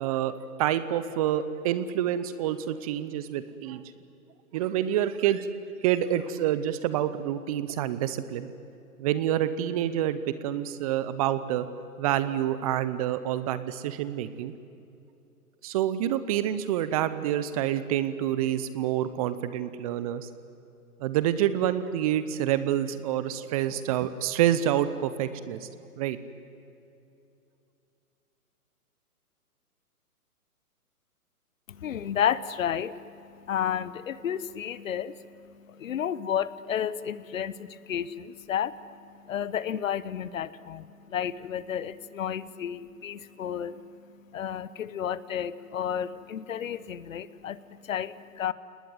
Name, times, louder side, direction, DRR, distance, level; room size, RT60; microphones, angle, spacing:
voice 1, 0.0-3.8 4.5-5.5 5.8-8.5 9.0-11.7 12.0-14.5 15.6-20.3 21.0-25.7 26.0-26.2, right 11 dB, 25° right, 13 dB, 0.8 m, -27 dB
voice 2, 31.7-48.5, left 9 dB, 60° left, 17 dB, 1.1 m, -32 dB
29.5 x 19.5 x 9.4 m, 2.7 s
hypercardioid pair, 135°, 46 cm